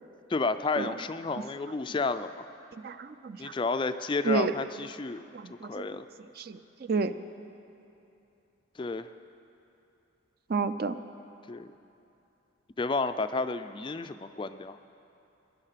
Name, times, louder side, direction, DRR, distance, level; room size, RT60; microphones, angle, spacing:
voice 1, 0.3-2.5 3.4-5.2 5.5-6.0 8.8-9.1 11.5-11.7 12.8-14.8, left 3 dB, 25° left, 11 dB, 0.3 m, -31 dB
voice 2, 2.8-3.5 4.3-4.5 5.3-5.8 6.4-6.6 6.9-7.1 10.5-11.0, right 4 dB, 50° right, 11 dB, 0.4 m, -30 dB
20.5 x 11.0 x 5.8 m, 2.8 s
head